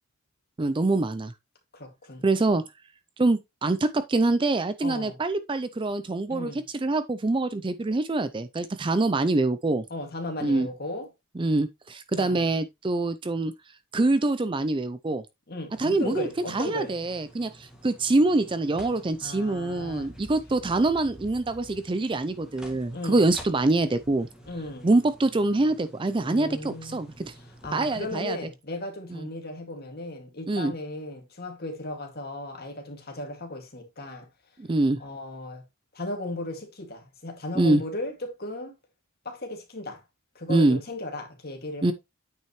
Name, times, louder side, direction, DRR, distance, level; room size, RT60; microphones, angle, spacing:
voice 1, 0.6-1.3 2.2-2.6 3.2-6.5 6.8-9.8 10.4-10.7 11.4-13.5 13.9-15.2 15.8-24.3 24.8-27.3 27.7-28.4 29.1-29.3 30.5-30.7 34.6-35.0 37.6-37.8 40.5-40.8 41.8-41.9, right 2 dB, 20° right, 0.4 m, -25 dB
voice 2, 1.7-2.2 4.8-5.2 6.3-6.6 9.9-11.1 12.1-12.5 15.5-16.9 19.2-20.1 22.9-23.3 24.5-24.9 26.2-27.0 27.3-34.3 35.0-35.6 35.9-38.7 39.2-40.0 40.3-41.9, left 1 dB, 45° left, 2.2 m, -36 dB
sound 1, 15.7-28.1, equal, 5° right, 1.7 m, -49 dB
9.0 x 5.7 x 3.1 m
head